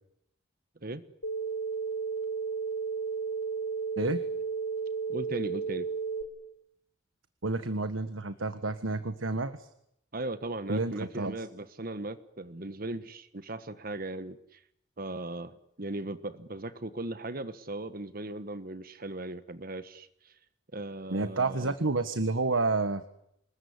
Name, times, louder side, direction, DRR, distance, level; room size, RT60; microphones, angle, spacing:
sound 1, 1.2-6.2, right 5 dB, 85° left, 5.4 m, -33 dB
voice 1, 5.1-5.9 10.1-14.6 15.0-20.4 20.7-21.7, right 2 dB, 45° right, 13 dB, 1.3 m, -38 dB
voice 2, 7.4-9.7 10.7-11.3 21.1-23.0, right 3 dB, 90° right, 10 dB, 1.6 m, -30 dB
27.0 x 21.5 x 9.8 m, 0.75 s
head